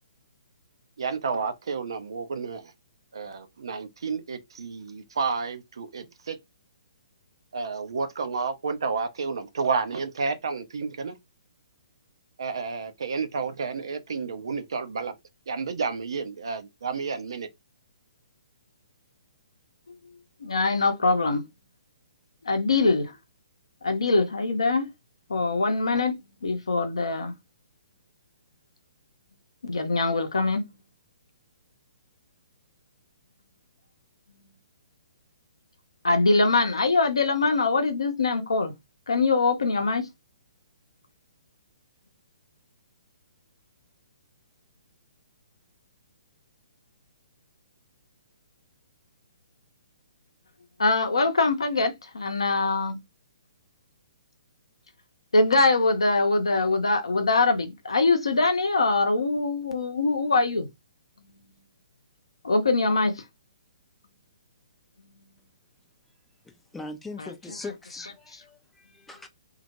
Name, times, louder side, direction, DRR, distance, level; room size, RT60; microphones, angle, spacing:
voice 1, 1.0-2.6 3.1-6.4 7.5-11.1 12.4-15.1 15.5-17.5, right 5 dB, 60° right, 0.5 m, -31 dB
voice 2, 20.4-21.4 22.4-23.1 23.8-24.9 25.3-26.1 26.4-27.3 29.6-30.6 36.0-38.7 39.1-40.1 50.8-53.0 55.3-60.7 62.4-63.2 65.0-65.1 67.2-67.3, left 3 dB, 65° left, 0.6 m, -23 dB
voice 3, 66.7-69.3, left 3 dB, 5° left, 0.4 m, -40 dB
2.2 x 2.1 x 2.8 m
figure-of-eight pair, 125°, 3 cm